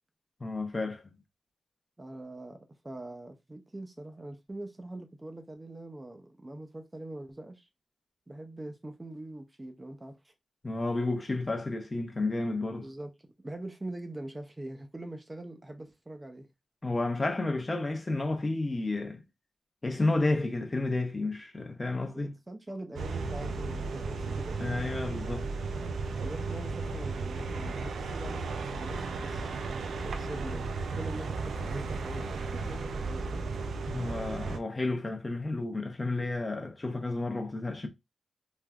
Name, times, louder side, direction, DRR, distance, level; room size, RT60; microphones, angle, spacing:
voice 1, 0.4-1.0 10.6-12.9 16.8-19.2 19.8-22.3 24.6-25.5 33.9-37.9, left 2 dB, 30° left, 0.6 m, -31 dB
voice 2, 2.0-7.7 8.3-10.3 12.8-13.1 13.4-16.5 22.1-24.6 25.4-25.5 26.2-29.5 30.0-33.5, right 1 dB, 20° right, 0.5 m, -43 dB
sound 1, 23.0-34.6, right 4 dB, 85° right, 0.4 m, -35 dB
3.3 x 2.5 x 2.2 m
cardioid pair, 75°, 0 cm